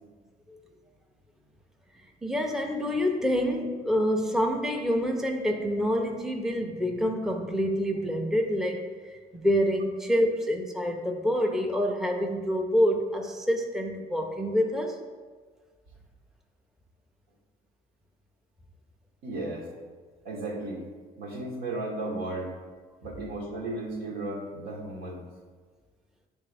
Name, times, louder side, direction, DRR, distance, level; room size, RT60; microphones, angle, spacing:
voice 1, 2.2-15.0, equal, ahead, 2 dB, 0.6 m, -27 dB
voice 2, 19.2-19.7 20.2-20.8 21.2-22.5 23.0-25.2, right 2 dB, 85° right, -1 dB, 1.5 m, -34 dB
9.6 x 3.4 x 3.4 m, 1.4 s
cardioid pair, 110°, 17 cm